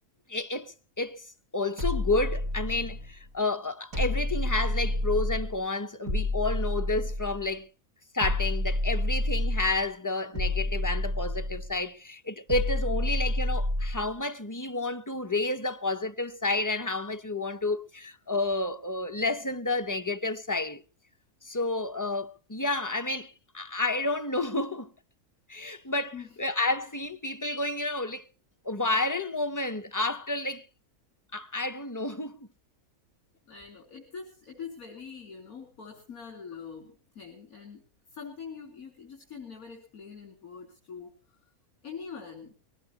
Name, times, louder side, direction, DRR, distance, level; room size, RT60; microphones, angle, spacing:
voice 1, 0.3-1.2 1.5-7.7 8.1-20.8 21.4-24.9 25.5-26.1 26.4-28.2 28.6-30.7 31.3-32.5, left 2 dB, 25° left, 0.4 m, -30 dB
sound 1, 1.8-3.1 3.9-5.6 6.1-7.5 8.2-9.8 10.4-11.8 12.5-14.1, left 1 dB, 65° right, 4.8 m, -29 dB
voice 2, 33.5-41.4 41.8-42.5, left 6 dB, 70° left, 3.8 m, -44 dB
22.5 x 18.5 x 2.9 m
omnidirectional pair, 1.5 m